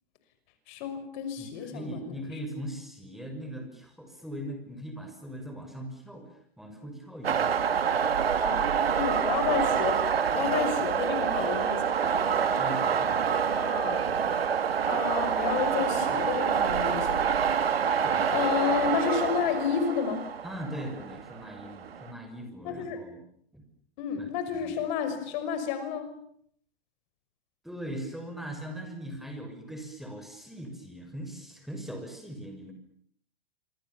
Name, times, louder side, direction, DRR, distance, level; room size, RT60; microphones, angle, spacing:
voice 1, 0.7-2.1 8.4-8.6 9.0-10.0 10.3-12.4 13.3-14.0 14.9-17.2 18.3-20.3 22.6-23.0 24.0-26.1, left 7 dB, 50° left, 9 dB, 5.9 m, -31 dB
voice 2, 1.4-6.3 6.6-7.6 12.6-13.2 18.0-18.3 20.4-23.2 23.5-23.6 24.2-24.3 24.6-24.8 27.6-32.7, right 1 dB, ahead, 5 dB, 6.5 m, -40 dB
sound 1, 7.2-22.1, right 7 dB, 80° right, 2.5 m, -27 dB
28.0 x 25.5 x 7.3 m, 0.66 s
hypercardioid pair, 110°, 30 cm